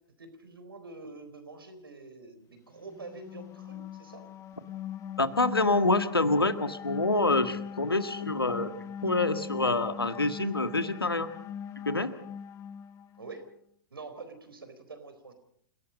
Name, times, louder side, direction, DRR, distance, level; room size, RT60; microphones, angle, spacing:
voice 1, 0.2-4.2 13.1-13.5 13.9-15.3, right 3 dB, 75° right, 8 dB, 4.3 m, -46 dB
sound 1, 2.9-13.4, left 8 dB, 25° left, 1.2 m, -40 dB
voice 2, 5.2-8.7 9.0-11.3 11.8-12.1, left 2 dB, 85° left, 10 dB, 1.7 m, -26 dB
29.0 x 17.5 x 5.3 m, 0.65 s
figure-of-eight pair, 105°, 12 cm